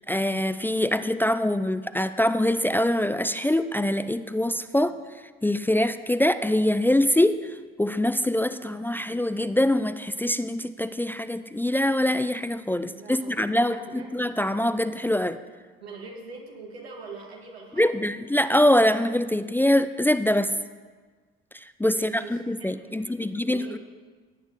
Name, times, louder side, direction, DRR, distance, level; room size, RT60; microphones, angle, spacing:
voice 1, 0.0-4.9 5.4-7.5 7.8-15.4 17.8-20.5 21.8-23.8, left 1 dB, 5° left, 11 dB, 0.5 m, -24 dB
voice 2, 12.8-14.1 15.8-18.0 21.9-23.8, right 4 dB, 85° right, -2 dB, 2.3 m, -43 dB
17.0 x 9.0 x 4.0 m, 1.4 s
figure-of-eight pair, 55°, 30 cm